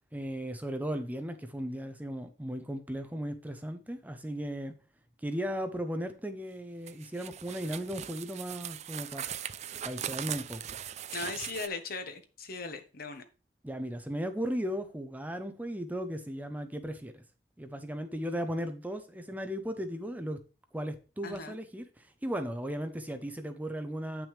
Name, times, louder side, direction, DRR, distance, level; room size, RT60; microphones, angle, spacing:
voice 1, 0.1-4.7 5.2-9.2 9.8-10.6 13.6-17.2 17.6-20.4 20.7-24.3, equal, 10° right, 0.7 m, -36 dB
sound 1, 6.9-11.7, right 10 dB, 40° right, 0.4 m, -40 dB
voice 2, 11.1-13.2 21.2-21.5, left 4 dB, 60° left, 1.2 m, -38 dB
9.1 x 6.0 x 3.3 m
head